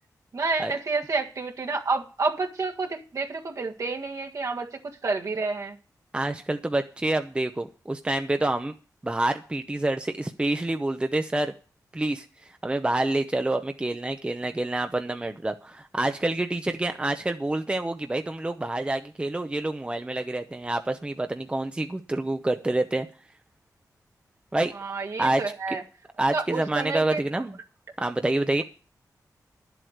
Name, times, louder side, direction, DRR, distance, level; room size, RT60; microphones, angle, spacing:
voice 1, 0.3-5.8 24.7-25.8 26.3-27.2, right 3 dB, 55° right, 1.7 m, -29 dB
voice 2, 6.1-8.7 9.0-11.5 11.9-12.2 12.6-23.1 24.5-24.7 25.2-25.4 25.7-25.8 26.2-27.6 28.0-28.6, right 2 dB, 15° right, 0.7 m, -27 dB
11.0 x 7.9 x 6.4 m
wide cardioid pair, 100°, 7 cm